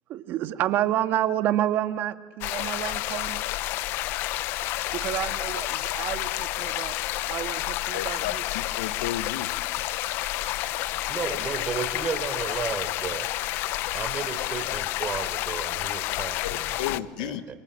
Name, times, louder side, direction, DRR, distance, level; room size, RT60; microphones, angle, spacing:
voice 1, 0.1-3.4 4.9-6.9 7.3-8.4, right 12 dB, 55° right, 8 dB, 1.8 m, -29 dB
sound 1, 2.4-17.0, left 16 dB, 60° left, 0.9 m, -30 dB
voice 2, 7.9-9.5 16.4-17.4, left 12 dB, 85° left, 11 dB, 1.5 m, -33 dB
voice 3, 11.1-13.3 13.9-17.6, right 6 dB, 35° right, 10 dB, 3.9 m, -34 dB
28.0 x 27.0 x 7.8 m, 1.2 s
supercardioid pair, 100°, 4 cm